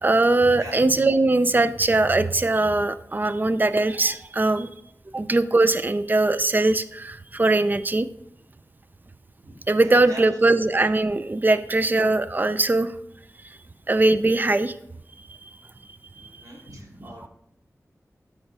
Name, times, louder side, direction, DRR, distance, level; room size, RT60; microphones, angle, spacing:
voice 1, 0.0-4.7 5.1-8.1 9.7-12.9 13.9-14.7, right 2 dB, 30° right, 12 dB, 0.5 m, -21 dB
voice 2, 0.5-0.9 5.1-5.2 9.4-10.2 16.1-17.3, right 1 dB, 80° right, -3 dB, 3.4 m, -42 dB
13.0 x 5.3 x 3.7 m, 0.75 s
wide cardioid pair, 80°, 6 cm